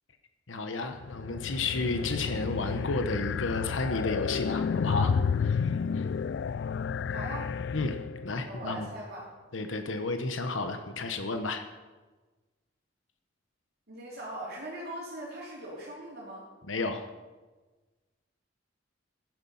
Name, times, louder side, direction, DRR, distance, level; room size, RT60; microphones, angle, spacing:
voice 1, 0.5-5.1 5.4-6.1 7.7-8.0 8.2-8.9 9.5-11.7 16.7-17.0, left 3 dB, 85° left, 7 dB, 1.1 m, -32 dB
sound 1, 1.0-8.4, left 6 dB, 65° left, 0.4 m, -31 dB
voice 2, 7.1-7.5 8.4-9.3 13.9-16.4, right 1 dB, 55° right, -6 dB, 3.4 m, -40 dB
15.0 x 11.0 x 5.6 m, 1.3 s
head